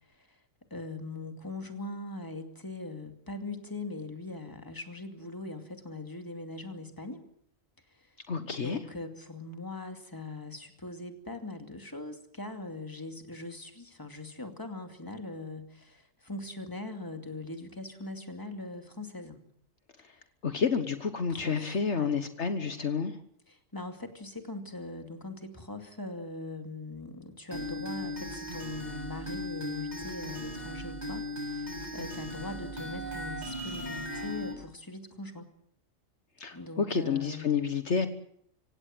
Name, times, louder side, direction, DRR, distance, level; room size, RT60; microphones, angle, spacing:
voice 1, 0.1-0.4 0.7-7.2 7.9-19.4 21.3-22.2 23.5-35.5 36.5-37.5, left 2 dB, 15° left, 5 dB, 2.4 m, -41 dB
voice 2, 8.3-8.8 20.0-20.1 20.4-23.2 36.4-38.1, left 6 dB, 60° left, 9 dB, 1.5 m, -29 dB
sound 1, 27.5-34.5, equal, 35° right, 7.0 m, -37 dB
26.0 x 17.0 x 7.7 m, 0.68 s
omnidirectional pair, 1.3 m